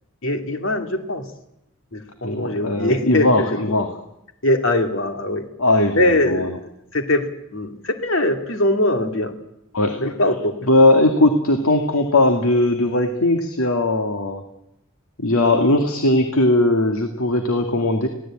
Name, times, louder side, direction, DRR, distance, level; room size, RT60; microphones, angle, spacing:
voice 1, 0.2-1.3 1.9-3.6 4.4-5.4 5.9-6.5 6.9-7.2 7.5-9.3 10.0-10.5, left 1 dB, 60° left, 6 dB, 2.5 m, -21 dB
voice 2, 2.2-4.0 5.6-6.6 9.7-10.0 10.7-14.4 15.2-18.1, left 2 dB, 90° left, 5 dB, 2.2 m, -18 dB
25.5 x 17.0 x 8.8 m, 0.83 s
head